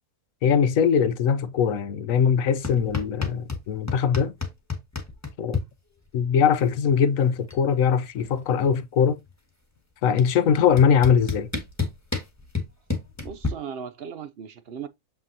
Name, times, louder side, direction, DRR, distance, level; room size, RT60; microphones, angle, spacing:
voice 1, 0.4-4.3 5.4-5.6 6.1-9.2 10.0-11.5, left 7 dB, 65° left, 1.0 m, -21 dB
sound 1, 2.6-3.6 3.9-5.6 6.9-7.0 7.3-7.7 7.9-9.3 10.2-10.3 10.8-13.5, left 4 dB, 10° left, 1.4 m, -29 dB
voice 2, 13.2-14.9, right 7 dB, 70° right, 0.5 m, -37 dB
7.4 x 5.5 x 2.7 m
omnidirectional pair, 1.7 m